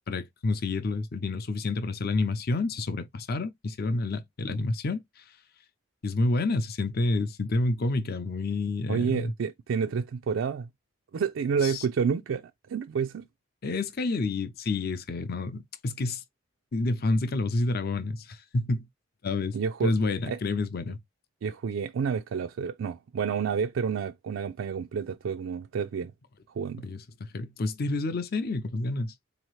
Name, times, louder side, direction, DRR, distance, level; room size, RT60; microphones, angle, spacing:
voice 1, 0.1-5.0 6.0-9.3 11.6-11.9 13.6-16.2 16.7-18.9 19.2-19.6 19.8-21.0 26.8-29.1, left 2 dB, 50° left, 0.6 m, -29 dB
voice 2, 8.9-10.7 11.1-12.4 12.7-13.3 19.5-19.9 20.2-20.4 21.4-26.1 26.5-26.8, right 6 dB, 85° right, 0.4 m, -29 dB
4.0 x 2.8 x 3.1 m
head